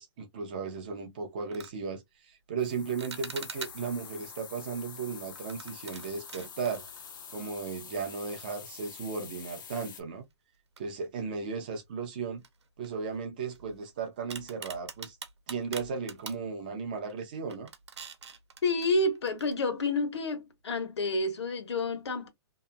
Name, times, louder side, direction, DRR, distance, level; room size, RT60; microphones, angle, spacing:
voice 1, 0.0-6.8 7.3-10.2 10.8-12.4 12.8-15.2 15.5-17.7, right 5 dB, 20° right, 0.4 m, -36 dB
sound 1, 0.8-1.0 1.4-1.8 3.0-4.0 5.3-7.7 8.0-8.1 8.8-8.9 10.8-11.4 11.7-11.9 12.4-13.9 14.3-16.4 17.0-17.2 17.5-19.5, right 6 dB, 90° right, 0.8 m, -45 dB
sound 2, 2.6-10.0, left 7 dB, 45° left, 0.6 m, -46 dB
voice 2, 18.6-22.3, left 2 dB, 80° left, 1.2 m, -29 dB
2.7 x 2.4 x 2.2 m
hypercardioid pair, 175°, 14 cm